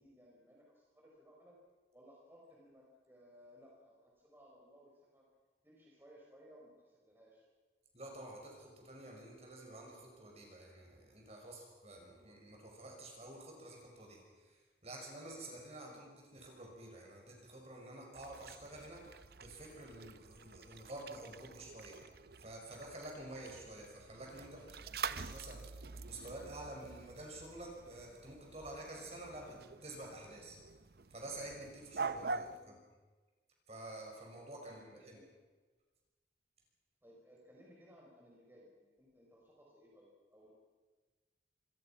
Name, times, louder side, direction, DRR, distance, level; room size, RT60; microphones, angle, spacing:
voice 1, 0.0-1.6 1.9-5.2 5.6-7.5 12.1-12.4 15.8-16.1 23.7-23.9 29.5-29.7 32.3-32.8 34.6-35.3 37.0-40.5, equal, 10° right, -3 dB, 4.6 m, -61 dB
voice 2, 7.9-14.5 14.8-22.0 22.4-30.6 31.1-32.8 33.7-35.2, right 1 dB, 35° right, 0 dB, 6.0 m, -50 dB
sound 1, 18.1-32.6, right 4 dB, 60° right, 0.7 m, -46 dB
26.5 x 21.5 x 5.9 m, 1.3 s
head